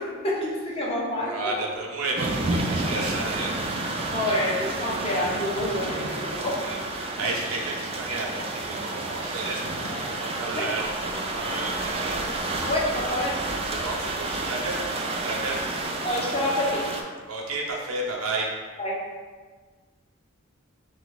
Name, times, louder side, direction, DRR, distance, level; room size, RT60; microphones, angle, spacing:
voice 1, 0.0-1.5 4.1-6.6 10.5-10.7 12.6-13.4 16.0-16.9 18.8-19.0, left 1 dB, 25° left, -4 dB, 0.8 m, -27 dB
voice 2, 1.2-3.6 6.6-12.2 13.7-15.6 17.2-18.5, right 2 dB, 80° right, -2 dB, 0.8 m, -32 dB
sound 1, 2.2-17.0, right 2 dB, 25° right, 0.3 m, -30 dB
sound 2, 5.8-6.6 9.6-10.7, left 1 dB, 60° left, 0.7 m, -40 dB
3.4 x 2.9 x 3.9 m, 1.4 s
head